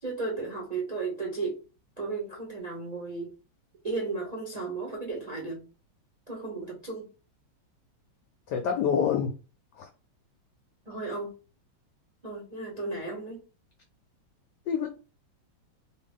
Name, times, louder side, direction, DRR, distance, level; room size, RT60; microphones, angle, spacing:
voice 1, 0.0-1.6 2.0-3.3 3.8-5.7 6.3-7.1 10.9-11.3 12.2-13.4, right 3 dB, 35° right, 0.6 m, -34 dB
voice 2, 8.5-9.3 9.7-9.9 14.7-14.9, left 7 dB, 75° left, 1.0 m, -26 dB
2.9 x 2.8 x 3.4 m
omnidirectional pair, 2.2 m